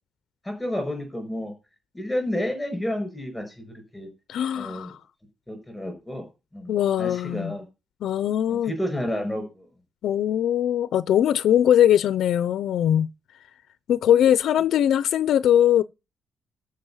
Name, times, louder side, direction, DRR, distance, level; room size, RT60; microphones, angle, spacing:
voice 1, 0.4-1.5 1.9-4.1 4.5-4.9 5.5-6.2 6.5-7.7 8.5-9.7, left 1 dB, 5° left, 5.7 m, -30 dB
voice 2, 4.3-5.0 6.7-7.6 8.0-8.7 10.0-13.1 13.9-15.8, left 10 dB, 70° left, 0.6 m, -21 dB
13.5 x 5.4 x 5.6 m
cardioid pair, 170°, 0 cm